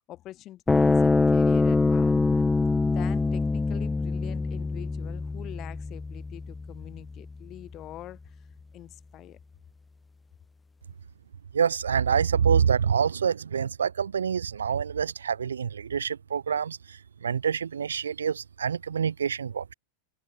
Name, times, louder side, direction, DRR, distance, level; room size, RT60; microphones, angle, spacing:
voice 1, 0.1-8.2 8.7-9.4, left 14 dB, 35° left, 5.1 m, -44 dB
sound 1, 0.7-7.3, left 3 dB, 10° left, 1.7 m, -24 dB
voice 2, 11.5-17.0 17.2-19.7, right 7 dB, 70° right, 0.4 m, -26 dB
open air
figure-of-eight pair, 90°, 0 cm